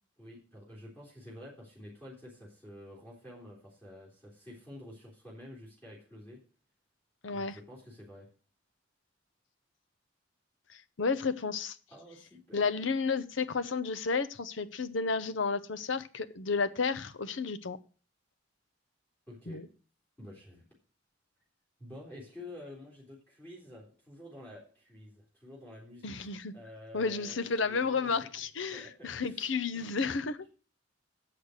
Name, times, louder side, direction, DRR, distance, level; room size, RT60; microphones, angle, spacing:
voice 1, 0.2-6.4 7.3-8.3 11.9-12.7 19.3-19.6 20.2-20.6 21.8-28.3 28.7-30.2, left 1 dB, 10° left, -5 dB, 3.5 m, -50 dB
voice 2, 7.2-7.6 11.0-11.8 12.5-17.8 19.5-19.7 26.0-26.5 26.9-30.4, left 4 dB, 80° left, 12 dB, 0.8 m, -32 dB
7.8 x 6.5 x 8.2 m, 0.38 s
head